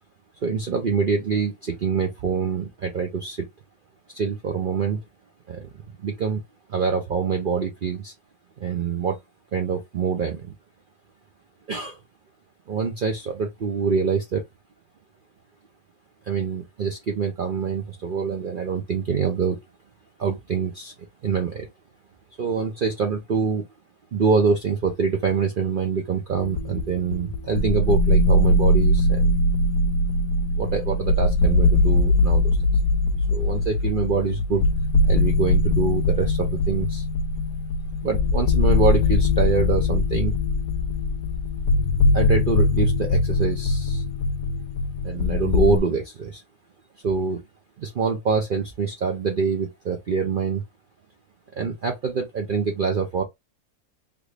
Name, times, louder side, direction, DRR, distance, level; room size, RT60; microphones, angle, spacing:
voice 1, 0.4-3.5 4.1-5.0 5.5-5.7 6.0-6.4 6.7-8.1 8.6-9.2 9.5-10.5 11.7-12.0 12.7-14.4 16.2-19.6 20.2-20.9 21.2-21.7 22.4-23.6 24.1-29.3 30.6-32.5 33.3-34.7 35.0-37.0 38.0-40.3 42.1-44.0 45.0-46.4 47.0-47.4 47.8-50.6 51.5-53.2, right 5 dB, 70° right, 0.5 m, -25 dB
sound 1, 26.4-45.8, left 2 dB, 65° left, 0.9 m, -21 dB
3.5 x 2.4 x 3.2 m
omnidirectional pair, 1.6 m